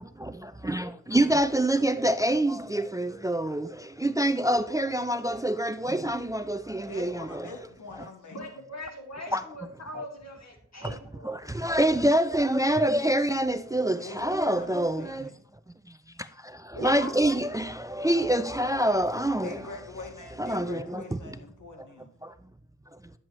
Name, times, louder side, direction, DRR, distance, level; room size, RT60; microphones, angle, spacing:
voice 1, 0.6-3.7 4.0-7.5 9.3-9.4 11.3-15.2 16.8-19.6 20.4-21.0, right 1 dB, 10° right, 0.4 m, -26 dB
voice 2, 6.8-8.6 13.9-15.4 19.4-22.1, left 3 dB, 85° left, 1.6 m, -44 dB
voice 3, 8.3-11.3 16.7-17.1, left 1 dB, 60° left, 2.7 m, -40 dB
10.5 x 7.6 x 3.1 m
wide cardioid pair, 100°, 30 cm